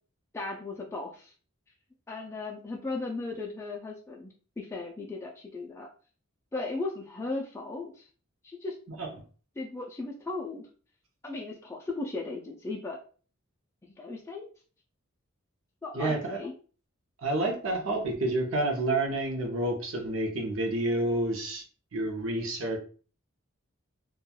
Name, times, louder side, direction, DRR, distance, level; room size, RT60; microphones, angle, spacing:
voice 1, 0.3-1.3 2.1-5.9 6.5-8.1 8.4-8.8 9.6-10.7 11.2-13.0 13.8-14.5 15.8-16.5, left 3 dB, 15° left, -2 dB, 0.3 m, -36 dB
voice 2, 16.0-16.4 17.2-21.6 21.9-22.8, right 2 dB, 70° right, 2 dB, 0.7 m, -29 dB
2.9 x 2.2 x 2.3 m, 0.39 s
head